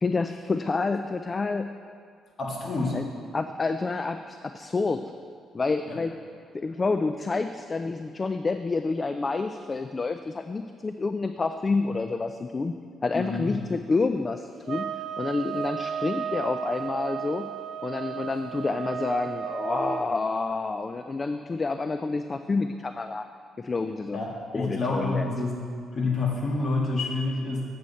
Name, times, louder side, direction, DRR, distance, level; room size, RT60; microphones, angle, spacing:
voice 1, 0.0-1.7 2.9-3.0 3.3-5.0 5.5-6.1 6.5-12.7 13.0-14.9 15.2-17.5 17.8-23.3 23.6-24.2 24.5-25.3, left 3 dB, 30° left, 8 dB, 0.3 m, -28 dB
voice 2, 2.4-3.0 5.9-6.0 13.1-13.5 24.1-25.6 25.9-27.6, left 3 dB, 45° left, -2 dB, 1.8 m, -28 dB
sound 1, 14.6-20.1, right 8 dB, 60° right, 0.3 m, -34 dB
7.8 x 7.7 x 4.2 m, 2.3 s
cardioid pair, 90°, 0 cm